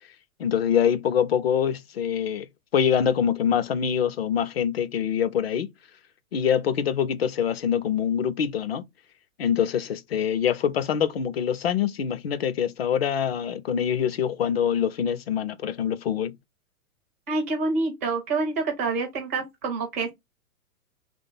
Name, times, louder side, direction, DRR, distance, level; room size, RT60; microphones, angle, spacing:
voice 1, 0.4-2.5 2.7-5.7 6.3-8.8 9.4-16.4, left 8 dB, 45° left, 0.5 m, -24 dB
voice 2, 17.3-20.1, right 3 dB, 10° right, 0.4 m, -27 dB
3.3 x 3.2 x 3.9 m
figure-of-eight pair, 110°, 44 cm